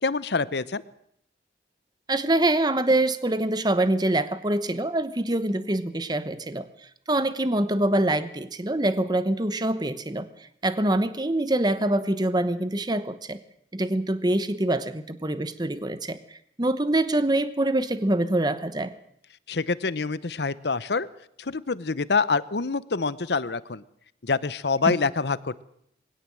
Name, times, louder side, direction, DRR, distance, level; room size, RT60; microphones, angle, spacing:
voice 1, 0.0-0.8 19.5-21.1 21.4-23.8 24.2-25.6, left 4 dB, 70° left, 17 dB, 0.8 m, -26 dB
voice 2, 2.1-6.7 7.1-10.3 10.6-13.4 13.7-16.2 16.6-18.9 24.8-24.9, right 1 dB, 25° right, 12 dB, 1.0 m, -25 dB
21.0 x 17.0 x 7.7 m, 0.69 s
head